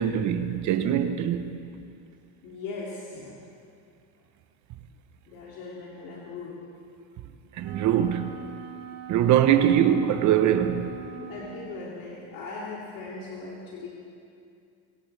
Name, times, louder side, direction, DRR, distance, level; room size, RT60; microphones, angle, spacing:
voice 1, 0.0-1.5 7.6-8.4 9.1-11.0, right 10 dB, 55° right, 1.0 m, -22 dB
voice 2, 2.4-3.4 5.3-6.6 11.2-13.9, left 3 dB, 70° left, 2.7 m, -39 dB
Wind instrument woodwind instrument, 7.6-11.9, right 8 dB, 70° right, 1.5 m, -42 dB
24.0 x 17.5 x 3.4 m
cardioid pair, 130°, 35 cm